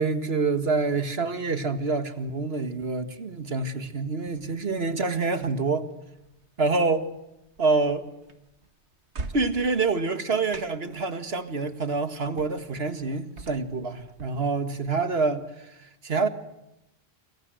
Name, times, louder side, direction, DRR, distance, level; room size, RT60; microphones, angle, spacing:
voice 1, 0.0-5.9 6.6-7.1 7.6-8.0 9.3-16.3, right 3 dB, 70° right, 2.1 m, -27 dB
sound 1, 4.3-14.3, right 3 dB, 90° right, 1.9 m, -46 dB
28.5 x 26.0 x 7.8 m
omnidirectional pair, 1.1 m